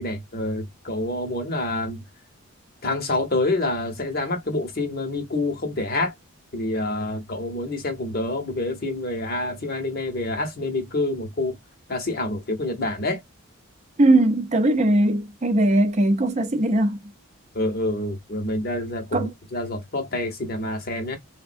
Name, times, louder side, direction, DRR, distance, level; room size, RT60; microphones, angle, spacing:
voice 1, 0.0-2.0 2.8-6.1 6.5-11.6 11.9-13.2 17.5-21.2, left 2 dB, 40° left, 0.8 m, -27 dB
voice 2, 14.0-17.0 19.1-19.3, right 1 dB, 30° right, 0.5 m, -19 dB
3.5 x 2.1 x 2.5 m
head